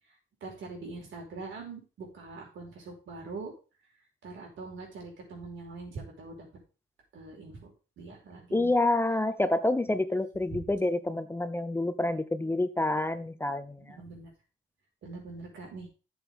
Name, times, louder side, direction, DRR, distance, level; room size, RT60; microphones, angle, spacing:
voice 1, 0.4-3.5 4.2-6.5 7.1-7.7 8.0-8.7 13.8-14.3 15.0-15.9, right 3 dB, 70° right, 0 dB, 5.0 m, -43 dB
voice 2, 8.5-14.0, left 2 dB, 10° left, 12 dB, 0.6 m, -28 dB
12.0 x 7.1 x 3.6 m, 0.33 s
cardioid pair, 90°, 20 cm